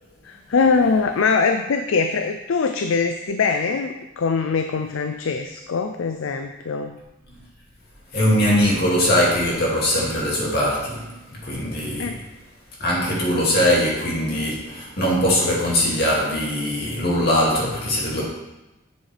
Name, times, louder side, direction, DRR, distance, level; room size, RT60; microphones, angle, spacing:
voice 1, 0.2-7.0 12.0-12.2, left 4 dB, 70° left, 6 dB, 0.4 m, -22 dB
voice 2, 8.1-12.2 12.8-18.2, equal, 50° left, -5 dB, 2.3 m, -21 dB
8.1 x 7.2 x 3.4 m, 1.0 s
head